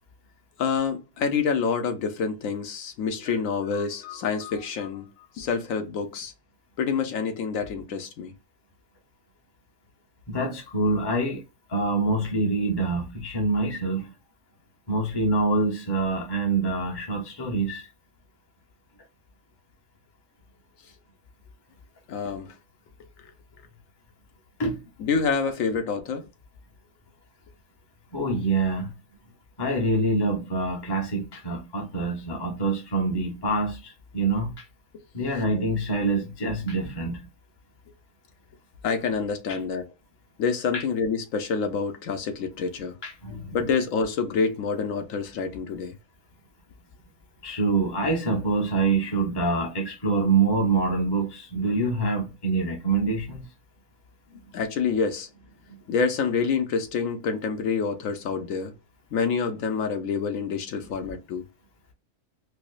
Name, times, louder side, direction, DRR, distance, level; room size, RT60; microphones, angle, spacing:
voice 1, 0.6-5.1 5.4-6.3 6.8-8.3 22.1-22.5 25.0-26.3 38.8-39.9 40.4-43.0 43.5-46.0 54.5-55.3 55.9-58.7 59.1-61.4, left 5 dB, 80° left, 1.1 m, -27 dB
voice 2, 10.3-11.4 11.7-14.1 14.9-17.9 24.6-24.8 28.1-28.9 29.6-34.6 35.1-37.3 39.5-39.6 40.7-40.8 43.0-43.6 47.4-53.5, right 3 dB, 20° left, 0.8 m, -25 dB
4.6 x 2.1 x 2.4 m
omnidirectional pair, 1.4 m